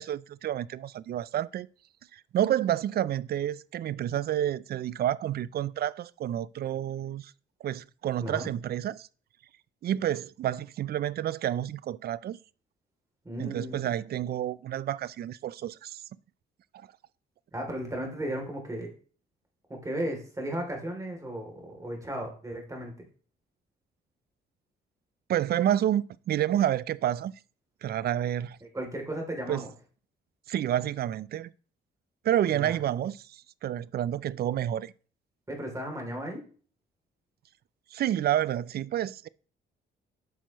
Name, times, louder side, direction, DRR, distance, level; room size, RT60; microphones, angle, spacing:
voice 1, 0.0-1.7 2.1-7.3 7.6-9.1 9.8-12.4 13.4-16.0 16.7-16.9 25.3-27.3 27.8-28.6 29.5-29.6 30.5-31.5 32.2-34.9 37.9-39.3, right 11 dB, 50° right, 0.4 m, -29 dB
voice 2, 13.2-13.9 17.5-18.9 19.7-22.9 28.7-29.7 32.5-32.8 35.5-36.5, right 1 dB, 15° right, 2.8 m, -35 dB
9.3 x 6.0 x 3.0 m
cardioid pair, 90°, 20 cm